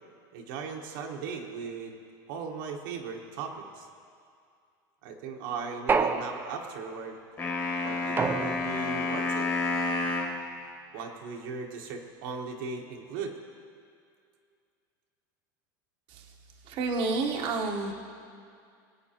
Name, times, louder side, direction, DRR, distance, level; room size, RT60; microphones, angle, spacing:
voice 1, 0.3-1.9 2.3-3.9 5.0-7.2 7.8-9.5 10.9-13.3, right 5 dB, 70° right, 1 dB, 1.3 m, -38 dB
sound 1, 5.9-6.9 8.2-9.0, right 5 dB, 20° right, 0.6 m, -28 dB
sound 2, 7.4-10.4, left 3 dB, 25° left, 1.7 m, -29 dB
voice 2, 16.7-17.9, right 3 dB, 45° right, 1 dB, 1.1 m, -29 dB
21.5 x 8.5 x 2.9 m, 2.3 s
supercardioid pair, 125°, 11 cm